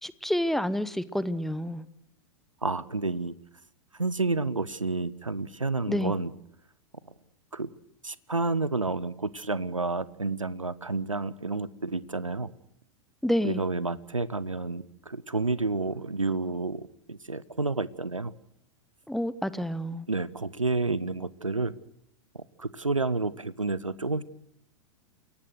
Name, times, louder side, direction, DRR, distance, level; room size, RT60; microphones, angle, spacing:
voice 1, 0.0-1.9 5.9-6.1 13.2-13.6 19.1-20.1, equal, ahead, 17 dB, 0.9 m, -29 dB
voice 2, 2.6-3.3 4.0-6.3 7.5-7.7 8.0-12.5 13.4-16.8 17.1-18.3 20.1-21.7 22.3-24.2, right 3 dB, 85° right, 19 dB, 1.0 m, -30 dB
29.0 x 17.5 x 6.4 m, 0.76 s
figure-of-eight pair, 95°, 16 cm